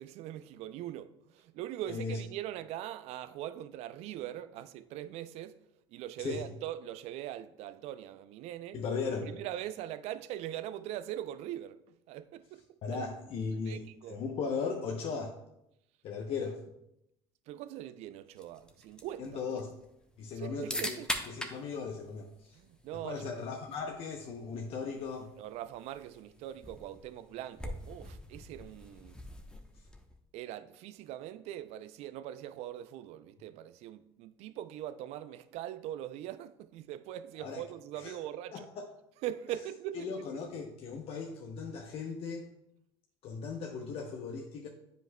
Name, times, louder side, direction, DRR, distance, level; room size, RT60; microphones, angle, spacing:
voice 1, 0.0-5.6 5.9-8.8 9.2-12.6 12.9-13.1 13.7-14.2 17.5-19.6 20.4-21.1 22.5-23.3 25.2-29.2 30.3-38.7 39.2-40.1 40.3-40.4, right 12 dB, 60° right, 0.4 m, -42 dB
voice 2, 1.9-2.2 6.2-6.4 8.7-9.3 12.8-15.4 16.0-16.6 19.2-19.7 20.2-21.0 21.3-22.6 23.0-25.3 37.4-37.6 37.9-38.2 38.5-38.9 39.9-42.5 43.2-44.7, left 5 dB, 55° left, 0.7 m, -37 dB
sound 1, 18.3-30.2, left 1 dB, 5° left, 0.9 m, -44 dB
9.1 x 5.1 x 2.2 m
hypercardioid pair, 75°, 12 cm